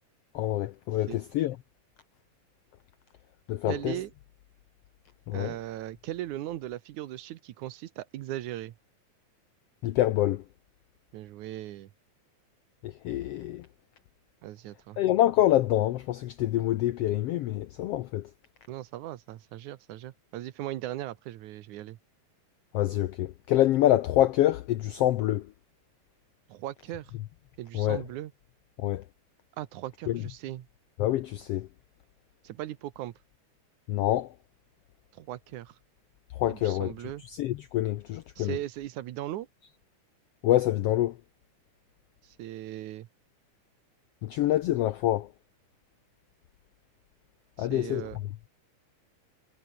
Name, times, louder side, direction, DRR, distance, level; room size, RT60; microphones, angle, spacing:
voice 1, 0.3-1.6 3.5-4.0 5.3-5.5 9.8-10.4 12.8-13.7 15.0-18.3 22.7-25.5 27.7-28.0 28.8-29.0 30.1-30.2 31.0-31.7 33.9-34.3 36.3-38.6 40.4-41.2 44.2-45.3 47.6-48.1, left 13 dB, 85° left, 1.4 m, -26 dB
voice 2, 3.7-4.1 5.3-8.7 11.1-11.9 14.4-15.0 18.7-22.0 26.5-27.1 27.6-28.3 29.6-30.7 32.4-33.1 35.1-35.7 36.5-37.2 38.4-39.5 42.4-43.1 47.6-48.2, right 14 dB, 75° right, 2.3 m, -38 dB
omnidirectional pair, 3.6 m